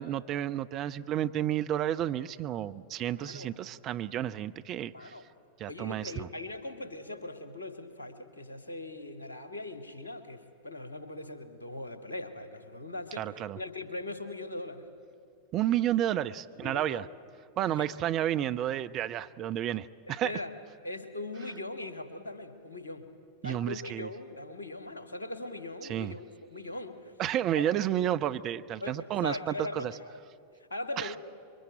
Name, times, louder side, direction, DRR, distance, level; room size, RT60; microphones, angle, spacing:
voice 1, 0.0-5.1 5.6-6.3 13.2-13.6 15.5-17.1 17.6-20.3 23.4-24.1 25.9-26.2 27.2-29.9 31.0-31.2, right 11 dB, 35° right, 10 dB, 0.8 m, -31 dB
voice 2, 5.7-14.8 16.5-17.0 17.8-17.9 20.1-20.5 20.8-23.1 23.4-27.1 27.5-27.7 28.8-30.1 30.7-31.2, left 2 dB, 75° left, 8 dB, 2.0 m, -40 dB
27.5 x 23.0 x 9.1 m, 2.3 s
figure-of-eight pair, 90°, 0 cm